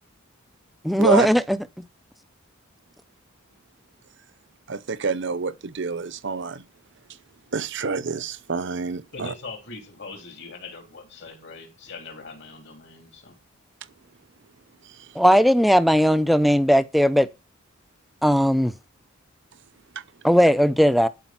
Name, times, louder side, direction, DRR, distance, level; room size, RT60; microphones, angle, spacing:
voice 1, 0.8-1.6 15.2-17.3 18.2-18.7 20.2-21.1, equal, ahead, 0.5 m, -18 dB
voice 2, 4.7-6.6 7.5-9.3, right 5 dB, 55° right, 0.7 m, -27 dB
voice 3, 9.1-13.4, left 3 dB, 55° left, 3.1 m, -41 dB
12.0 x 5.1 x 5.8 m
head